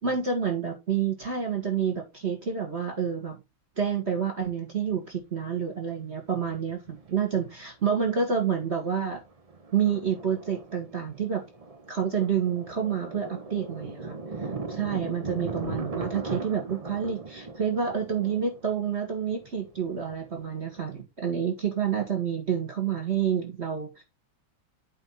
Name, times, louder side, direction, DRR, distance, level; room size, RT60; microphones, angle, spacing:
voice 1, 0.0-3.4 3.8-9.2 9.7-11.4 11.9-14.2 14.7-24.0, right 7 dB, 35° right, 1.8 m, -28 dB
Thunder, 4.9-5.0 6.3-7.2 7.4-7.5 7.9-8.2 8.6-21.0, right 3 dB, 55° right, 0.4 m, -39 dB
8.3 x 3.3 x 5.5 m
omnidirectional pair, 2.3 m